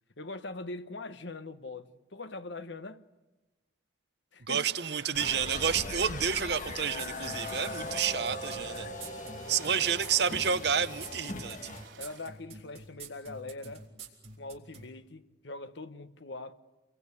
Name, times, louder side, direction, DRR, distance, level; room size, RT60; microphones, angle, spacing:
voice 1, 0.2-3.1 4.3-4.7 5.0-5.2 9.5-9.9 12.0-13.8 14.4-16.5, left 2 dB, 70° left, 1.1 m, -42 dB
voice 2, 4.4-9.1 9.5-11.7, right 7 dB, 60° right, 0.9 m, -30 dB
sound 1, 4.6-12.3, right 5 dB, 75° right, 2.9 m, -53 dB
sound 2, 5.1-11.9, left 2 dB, 40° left, 1.6 m, -39 dB
sound 3, 7.0-14.9, right 5 dB, 30° right, 3.9 m, -46 dB
27.5 x 22.5 x 8.4 m
head